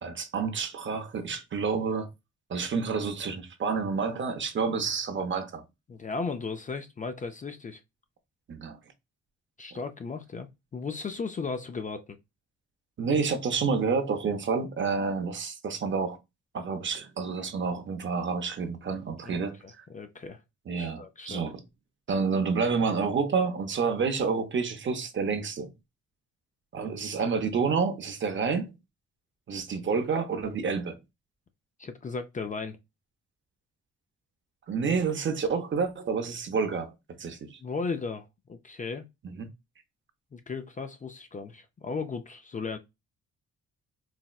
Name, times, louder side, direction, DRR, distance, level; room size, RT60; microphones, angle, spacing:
voice 1, 0.0-2.1 2.5-5.6 8.5-8.8 13.0-16.2 16.5-19.8 20.7-21.6 22.1-25.7 26.7-28.7 29.5-31.0 34.7-36.9 37.2-37.6 39.2-39.5, right 5 dB, 40° right, 0.6 m, -29 dB
voice 2, 5.9-7.8 9.6-10.5 10.7-12.0 19.2-20.4 20.8-21.4 31.8-32.8 37.6-39.0 40.3-42.8, left 4 dB, 25° left, 0.4 m, -36 dB
4.1 x 2.1 x 2.3 m
cardioid pair, 90°, 29 cm